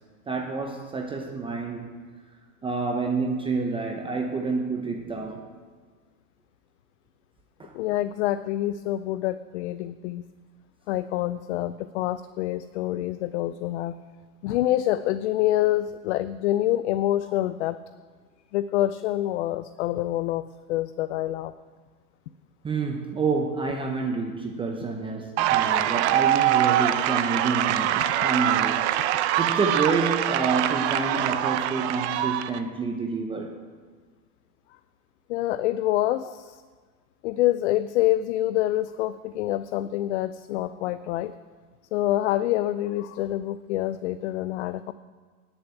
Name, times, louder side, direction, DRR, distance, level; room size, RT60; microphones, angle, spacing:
voice 1, 0.3-2.0 2.6-5.4 7.6-7.7 22.6-28.9 29.4-33.5, right 4 dB, 10° right, 2 dB, 0.8 m, -28 dB
voice 2, 7.7-10.2 10.9-14.0 14.4-17.8 18.5-20.4 20.7-21.5 35.3-36.6 37.2-41.3 41.9-44.9, left 14 dB, 50° left, 13 dB, 0.4 m, -26 dB
sound 1, 25.4-32.6, right 12 dB, 50° right, 0.7 m, -24 dB
9.7 x 7.0 x 9.1 m, 1.5 s
hypercardioid pair, 130°, 46 cm